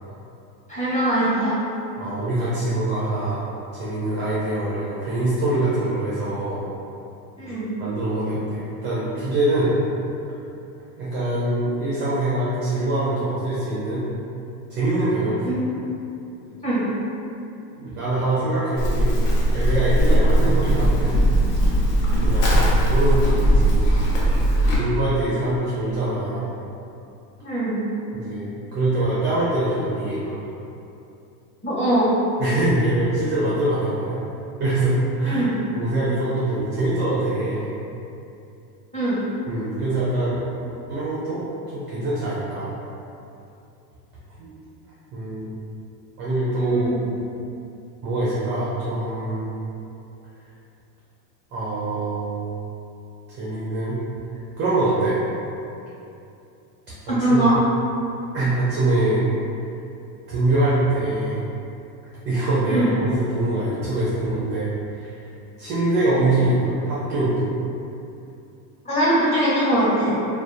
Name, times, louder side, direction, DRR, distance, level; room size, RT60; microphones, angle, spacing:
voice 1, 0.7-1.6 7.4-7.7 15.4-15.7 16.6-16.9 27.4-27.8 31.6-32.1 35.2-35.5 38.9-39.2 46.5-47.0 57.1-57.6 62.7-62.9 68.8-70.2, right 1 dB, 15° left, -10 dB, 0.8 m, -21 dB
voice 2, 2.0-6.7 7.8-9.7 11.0-14.0 14.7-15.5 17.8-19.1 19.5-21.1 22.2-23.9 24.8-26.5 28.1-30.4 32.4-34.2 34.6-37.7 39.5-42.8 44.4-44.5 45.1-45.6 46.2-46.9 48.0-49.5 51.5-52.6 53.3-54.0 54.6-55.2 57.1-57.5 58.3-59.3 60.3-61.4 62.2-65.3 65.6-67.4, right 2 dB, 25° right, -8 dB, 0.3 m, -24 dB
Livestock farm animals working animals, 18.8-24.8, right 1 dB, 70° left, 0.8 m, -19 dB
2.6 x 2.0 x 2.4 m, 2.7 s
supercardioid pair, 115°, 49 cm